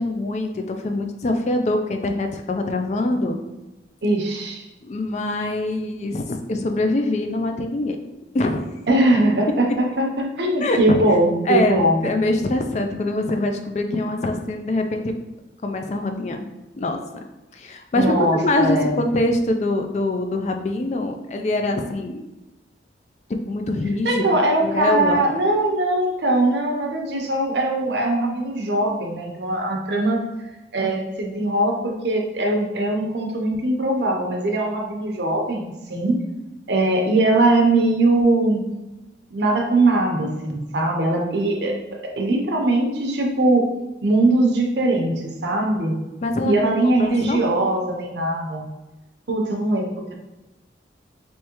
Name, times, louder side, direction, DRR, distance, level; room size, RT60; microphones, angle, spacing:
voice 1, 0.0-3.4 4.8-8.0 8.3-8.7 10.6-11.2 11.5-15.1 15.6-16.4 16.8-17.0 17.5-18.1 18.4-22.2 23.3-24.3 24.6-25.2 46.2-47.5, left 2 dB, 40° left, 5 dB, 0.3 m, -24 dB
voice 2, 4.0-4.6 8.9-9.8 10.2-12.0 17.9-18.9 24.0-30.2 30.7-36.2 36.7-38.6 39.3-41.8 42.0-43.7 44.0-45.9 46.4-48.7 49.3-50.2, right 2 dB, 75° right, 1 dB, 0.7 m, -21 dB
3.5 x 3.1 x 2.9 m, 1.0 s
head